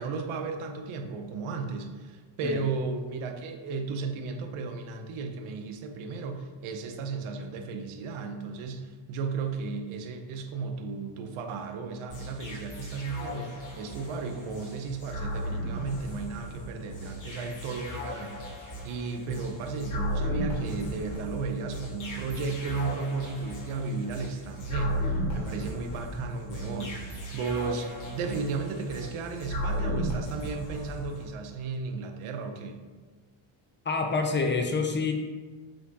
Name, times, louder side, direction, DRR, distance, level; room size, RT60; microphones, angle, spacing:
voice 1, 0.0-32.8, right 4 dB, 90° right, 5 dB, 0.9 m, -34 dB
sound 1, 12.1-31.3, equal, 40° left, 1.7 m, -35 dB
voice 2, 33.9-35.1, left 4 dB, 25° left, 3 dB, 0.4 m, -27 dB
7.7 x 4.4 x 2.8 m, 1.4 s
cardioid pair, 150°, 48 cm